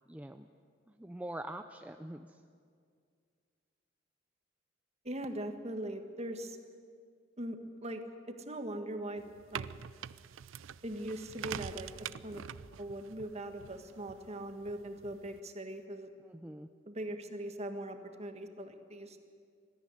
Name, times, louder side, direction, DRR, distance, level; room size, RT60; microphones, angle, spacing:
voice 1, 0.1-0.5 0.9-2.4 16.2-16.7, right 1 dB, 5° right, 7 dB, 0.5 m, -44 dB
voice 2, 5.0-6.6 7.4-9.7 10.8-12.4 12.8-16.1 16.9-19.2, right 1 dB, 35° right, 6 dB, 1.6 m, -41 dB
sound 1, 9.2-15.4, right 8 dB, 75° right, 0.5 m, -46 dB
20.5 x 14.0 x 9.8 m, 2.2 s
head